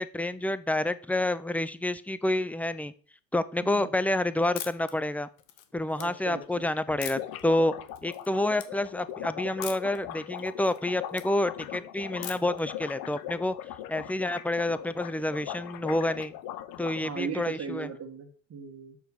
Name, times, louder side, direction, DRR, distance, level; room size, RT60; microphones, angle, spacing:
voice 1, 0.0-2.9 3.3-5.3 5.7-7.7 8.0-13.5 13.9-16.3 16.8-17.9, left 1 dB, 5° left, 14 dB, 0.7 m, -28 dB
sound 1, 4.6-4.9 5.4-6.0 7.0-7.4 7.9-8.3 8.5-8.7 9.6-10.0 10.4-11.3 12.2-12.6, left 12 dB, 85° left, 1.2 m, -40 dB
sound 2, 5.8-5.9 6.1-6.2 6.4-6.5 6.8-17.0, left 12 dB, 65° left, 0.9 m, -40 dB
voice 2, 6.0-6.6 17.0-19.0, right 6 dB, 40° right, 1 dB, 1.7 m, -38 dB
6.3 x 5.8 x 7.2 m, 0.43 s
supercardioid pair, 80°, 37 cm